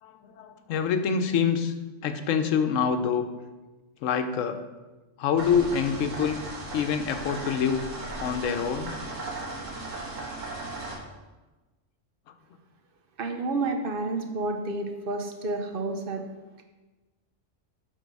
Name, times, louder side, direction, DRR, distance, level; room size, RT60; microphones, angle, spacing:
voice 1, 0.0-1.7 2.0-3.3 4.0-4.6 5.2-6.4 6.7-7.8 8.2-8.9 12.3-12.4, left 7 dB, 90° left, 8 dB, 1.0 m, -26 dB
sound 1, 5.4-11.0, right 2 dB, 85° right, 1.7 m, -37 dB
voice 2, 13.2-16.2, right 2 dB, 50° right, 5 dB, 0.9 m, -30 dB
8.0 x 3.8 x 5.3 m, 1.2 s
omnidirectional pair, 1.3 m